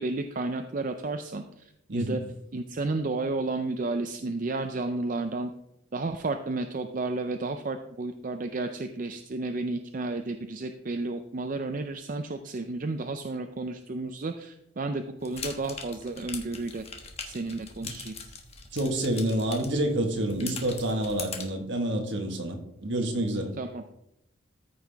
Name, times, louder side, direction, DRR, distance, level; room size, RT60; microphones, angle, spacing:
voice 1, 0.0-2.2 2.5-5.5 5.9-16.8 17.2-18.1 23.6-23.9, right 3 dB, 40° right, 7 dB, 0.5 m, -32 dB
voice 2, 1.9-2.2 17.8-17.9 18.7-23.6, right 1 dB, 65° right, 4 dB, 1.5 m, -28 dB
sound 1, 15.2-21.5, left 5 dB, 30° left, 1.3 m, -41 dB
14.0 x 5.6 x 3.5 m, 0.82 s
head